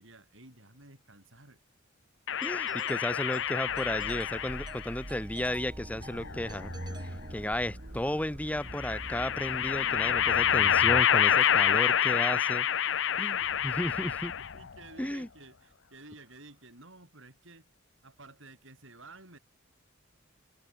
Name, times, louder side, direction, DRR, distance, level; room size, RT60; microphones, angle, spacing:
voice 1, 0.0-1.6 2.6-2.7 7.8-8.3 12.9-13.9 14.4-17.7 18.0-19.4, right 2 dB, 65° right, 7.2 m, -53 dB
sound 1, 2.3-4.9 6.1-7.1 8.7-14.7, left 9 dB, 60° left, 0.6 m, -27 dB
voice 2, 2.4-6.7 7.3-12.7 13.2-13.4 13.6-14.3 15.0-15.3, left 1 dB, 5° left, 0.8 m, -33 dB
Doorbell, 2.4-7.8, right 3 dB, 20° right, 5.2 m, -53 dB
sound 2, 3.7-11.0, right 1 dB, 40° right, 1.6 m, -43 dB
head